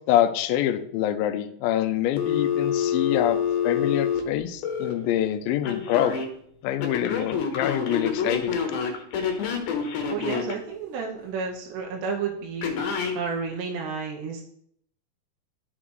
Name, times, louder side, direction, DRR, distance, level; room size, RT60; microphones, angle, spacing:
voice 1, 0.1-3.4 3.6-6.2 6.6-8.5, left 12 dB, 85° left, 8 dB, 2.1 m, -25 dB
Telephone, 2.2-4.9 5.6-6.3 6.8-10.5 12.6-13.2, left 7 dB, 65° left, 2.2 m, -27 dB
voice 2, 10.1-12.8 13.1-14.4, right 5 dB, 85° right, 0 dB, 3.0 m, -31 dB
12.5 x 5.8 x 3.2 m, 0.68 s
omnidirectional pair, 4.8 m